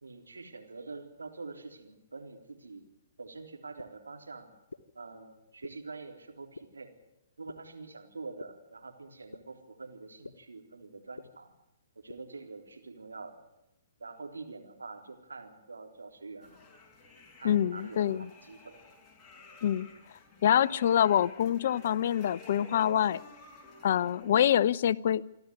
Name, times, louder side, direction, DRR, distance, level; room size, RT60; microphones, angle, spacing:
voice 1, 0.0-2.9 3.2-4.5 4.9-6.9 7.4-11.5 12.0-13.4 14.0-16.6 17.4-18.7, right 3 dB, 80° right, 4 dB, 3.8 m, -45 dB
sound 1, 3.8-3.9 4.7-4.8 5.6-5.7 6.6-6.7 7.5-7.6 8.4-8.5 9.3-9.4 10.2-10.3 11.2-11.3 12.1-12.2, left 4 dB, 80° left, 1.3 m, -43 dB
sound 2, 16.4-24.5, left 3 dB, 10° left, 5.8 m, -53 dB
voice 2, 17.4-18.2 19.6-19.9 20.4-23.2 23.8-25.2, left 10 dB, 55° left, 19 dB, 0.7 m, -25 dB
27.5 x 12.0 x 9.7 m, 0.88 s
figure-of-eight pair, 125°, 0 cm